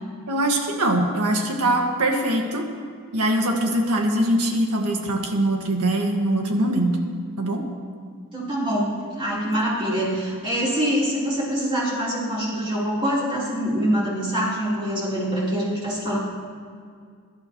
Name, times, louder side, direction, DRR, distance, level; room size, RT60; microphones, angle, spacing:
voice 1, 0.3-2.6 3.1-7.0 7.4-7.6, right 1 dB, 90° right, 2 dB, 1.8 m, -22 dB
voice 2, 8.3-16.2, equal, 25° right, -8 dB, 3.8 m, -24 dB
22.5 x 11.0 x 3.1 m, 2.1 s
head